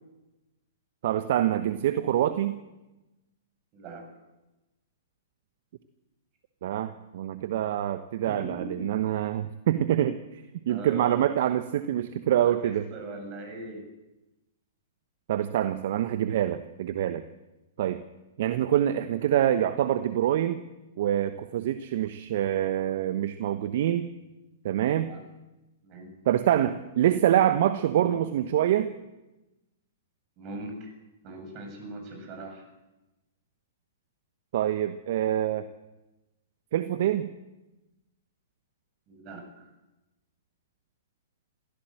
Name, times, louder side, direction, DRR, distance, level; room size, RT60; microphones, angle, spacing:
voice 1, 1.0-2.6 6.6-12.9 15.3-17.2 17.8-18.0 18.4-20.6 21.0-24.1 24.6-25.1 26.2-28.9 34.5-35.7 36.7-37.3, right 11 dB, 60° right, 11 dB, 1.1 m, -26 dB
voice 2, 3.7-4.1 8.3-8.9 10.7-11.3 12.4-13.8 24.9-25.2 25.8-26.2 27.9-28.1 30.4-30.7 31.2-32.6 39.1-39.7, right 2 dB, 35° right, 4 dB, 7.8 m, -40 dB
22.5 x 16.0 x 7.9 m, 1.0 s
hypercardioid pair, 115°, 0 cm